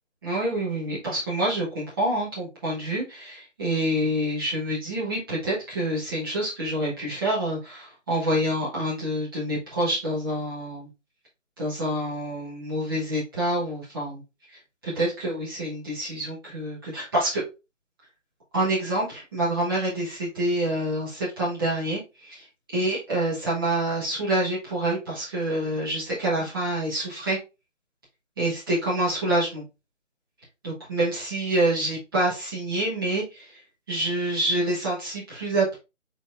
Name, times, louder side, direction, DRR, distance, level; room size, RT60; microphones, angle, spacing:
voice 1, 0.2-10.9 11.6-14.2 14.8-17.4 18.5-22.4 22.7-27.4 28.4-29.6 30.6-33.5 33.9-35.7, right 1 dB, 15° right, -7 dB, 1.3 m, -27 dB
4.1 x 4.0 x 2.5 m, 0.28 s
figure-of-eight pair, 155°, 38 cm